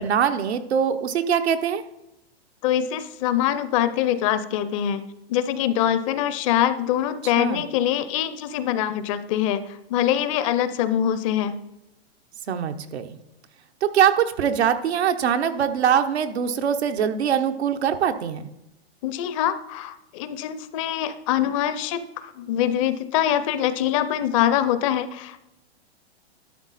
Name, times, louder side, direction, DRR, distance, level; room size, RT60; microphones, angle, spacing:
voice 1, 0.0-1.8 7.4-7.6 12.5-13.2 13.8-18.5, right 8 dB, 85° right, 7 dB, 1.0 m, -23 dB
voice 2, 2.6-5.0 5.3-9.6 9.9-11.6 19.0-25.4, left 11 dB, 30° left, 13 dB, 0.5 m, -24 dB
12.0 x 6.5 x 4.1 m, 0.88 s
hypercardioid pair, 145°, 32 cm